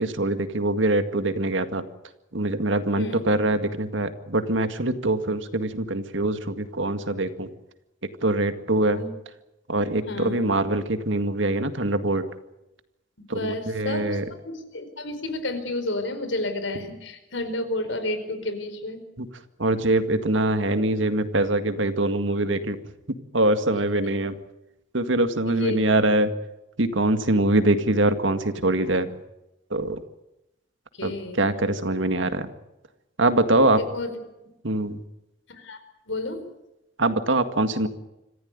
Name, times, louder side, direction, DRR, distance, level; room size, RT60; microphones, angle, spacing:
voice 1, 0.0-1.8 2.3-7.5 8.2-9.0 9.7-12.3 13.3-14.3 19.2-19.3 19.6-22.8 23.1-24.4 24.9-26.3 26.8-29.1 29.7-30.0 31.0-32.5 33.2-33.8 34.6-35.0 37.0-37.9, right 2 dB, 70° right, 9 dB, 2.0 m, -23 dB
voice 2, 10.1-10.4 13.3-14.2 14.4-19.0 25.5-25.8 30.9-31.4 33.7-34.1 34.4-34.5 35.5-35.8 36.1-36.5, left 2 dB, 75° left, 9 dB, 4.7 m, -31 dB
26.0 x 15.5 x 9.7 m, 0.93 s
head